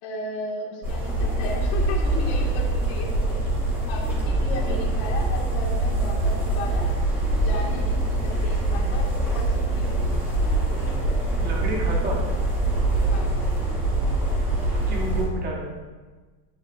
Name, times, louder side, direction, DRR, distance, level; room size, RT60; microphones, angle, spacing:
voice 1, 0.0-3.6 3.9-6.9 7.4-10.6 13.1-13.3, left 2 dB, 55° left, -2 dB, 2.1 m, -35 dB
sound 1, 0.8-15.2, right 2 dB, 5° right, 2.4 m, -24 dB
sound 2, 3.6-15.2, right 3 dB, 60° right, 1.9 m, -38 dB
voice 2, 11.4-12.2 14.7-15.7, right 1 dB, 20° right, -2 dB, 1.0 m, -30 dB
12.5 x 5.9 x 2.6 m, 1.3 s
cardioid pair, 180°, 44 cm